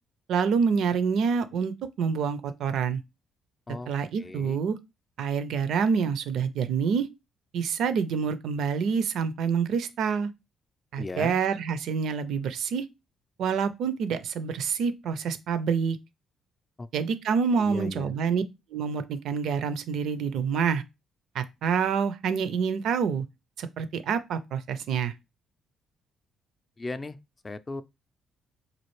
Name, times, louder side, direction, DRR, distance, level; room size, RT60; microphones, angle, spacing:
voice 1, 0.3-3.0 3.9-4.8 5.2-7.1 7.5-10.3 10.9-12.8 13.4-16.0 16.9-18.4 18.7-20.8 21.3-23.2 23.6-25.1, right 6 dB, 70° right, 0.4 m, -27 dB
voice 2, 4.2-4.6 11.0-11.4 16.8-16.9 17.6-18.1 26.8-27.2 27.4-27.8, left 3 dB, 30° left, 0.4 m, -36 dB
4.2 x 2.4 x 3.1 m
supercardioid pair, 55°, 0 cm